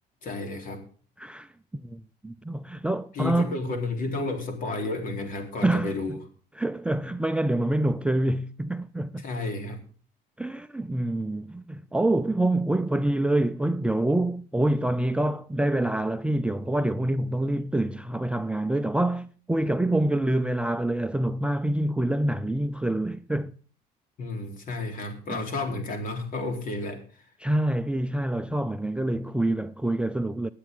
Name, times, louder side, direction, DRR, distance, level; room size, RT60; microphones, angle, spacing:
voice 1, 0.2-0.8 3.1-6.2 9.2-9.8 24.2-27.0, left 2 dB, 55° left, 3.8 m, -31 dB
voice 2, 1.2-1.5 1.8-3.6 5.6-5.9 6.6-9.2 10.4-23.5 25.3-25.4 27.4-30.5, right 1 dB, 5° right, 0.5 m, -26 dB
21.5 x 8.4 x 3.8 m
cardioid pair, 110°, 17 cm